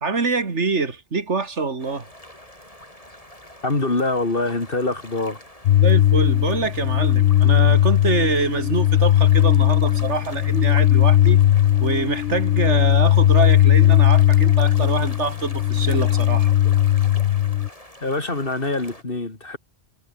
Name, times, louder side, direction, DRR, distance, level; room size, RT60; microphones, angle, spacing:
voice 1, 0.0-2.1 5.8-11.4 11.8-16.5, right 4 dB, 80° right, 2.6 m, -25 dB
sound 1, 1.8-19.0, left 1 dB, 30° left, 7.9 m, -44 dB
voice 2, 3.6-5.4 18.0-19.6, left 2 dB, 50° left, 3.4 m, -24 dB
sound 2, 5.6-17.7, left 12 dB, 75° left, 0.9 m, -17 dB
omnidirectional pair, 1.2 m